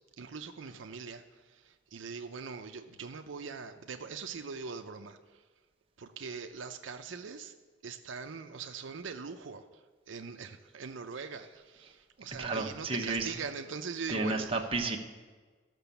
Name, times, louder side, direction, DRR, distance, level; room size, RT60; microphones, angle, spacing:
voice 1, 0.2-5.4 6.0-7.6 7.8-9.6 10.1-14.7, right 5 dB, 75° right, 7 dB, 0.6 m, -42 dB
voice 2, 12.4-13.3 14.1-15.0, right 3 dB, 30° right, 2 dB, 1.0 m, -32 dB
13.5 x 6.1 x 6.9 m, 1.4 s
head